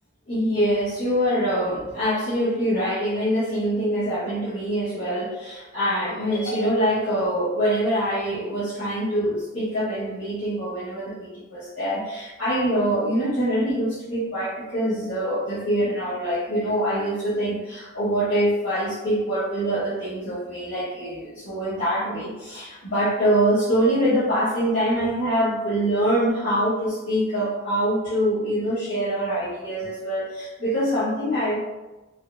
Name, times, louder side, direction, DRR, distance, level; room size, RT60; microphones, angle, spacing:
voice 1, 0.3-31.6, equal, 70° left, -14 dB, 1.2 m, -24 dB
3.9 x 2.2 x 2.6 m, 1.1 s
head